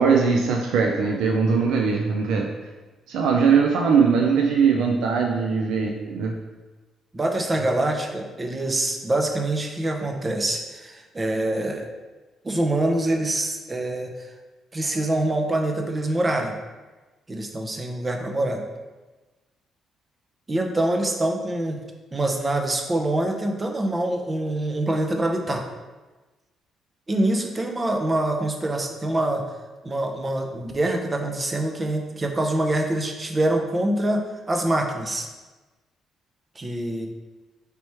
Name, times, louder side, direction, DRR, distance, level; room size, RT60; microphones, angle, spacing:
voice 1, 0.0-2.5 3.1-6.3, right 5 dB, 90° right, 1 dB, 0.3 m, -20 dB
voice 2, 7.1-11.9 12.4-14.3 14.7-16.6 17.3-18.6 20.5-21.8 22.1-25.6 27.1-29.4 29.8-34.2 34.5-35.3 36.6-37.1, right 1 dB, 25° right, 3 dB, 0.6 m, -25 dB
3.3 x 3.0 x 4.3 m, 1.2 s
cardioid pair, 90°, 0 cm